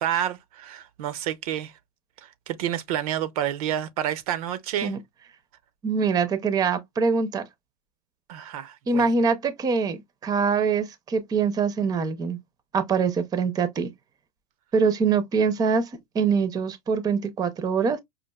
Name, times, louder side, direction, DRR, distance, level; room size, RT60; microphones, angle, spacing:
voice 1, 0.0-1.7 2.2-5.0 8.3-9.1, right 11 dB, 65° right, 0.6 m, -29 dB
voice 2, 5.8-7.4 8.9-12.4 12.7-13.9 14.7-15.9 16.1-18.0, right 5 dB, 20° right, 0.6 m, -24 dB
5.2 x 2.4 x 2.3 m
supercardioid pair, 130°, 20 cm